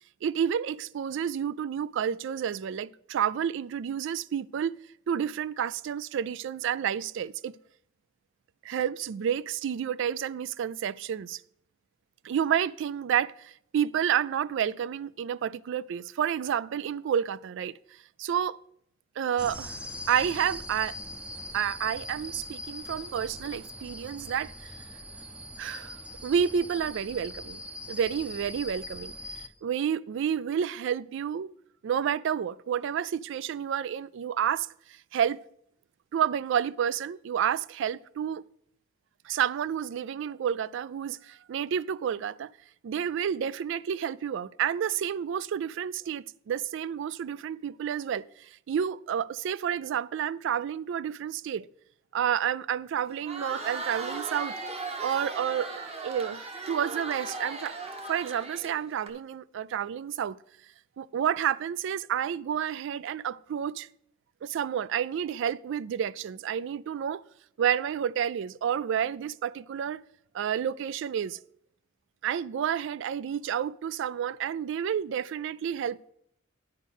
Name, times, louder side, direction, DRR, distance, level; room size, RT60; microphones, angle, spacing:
voice 1, 0.2-4.8 5.1-7.5 8.6-11.4 12.2-17.8 18.2-18.6 19.2-19.8 20.1-21.0 21.5-24.7 25.6-26.0 26.2-27.6 27.9-31.5 31.8-34.7 35.1-35.4 36.1-38.4 39.3-42.5 42.8-51.7 52.1-54.5 55.0-55.7 56.0-57.8 58.1-60.4 61.0-63.9 64.4-67.2 67.6-70.0 70.3-71.4 72.2-76.1, right 8 dB, 65° right, 0.3 m, -30 dB
sound 1, 19.4-29.5, left 1 dB, 5° right, 0.6 m, -41 dB
Crowd, 53.1-59.1, right 3 dB, 30° right, 1.1 m, -38 dB
9.4 x 5.1 x 6.3 m
head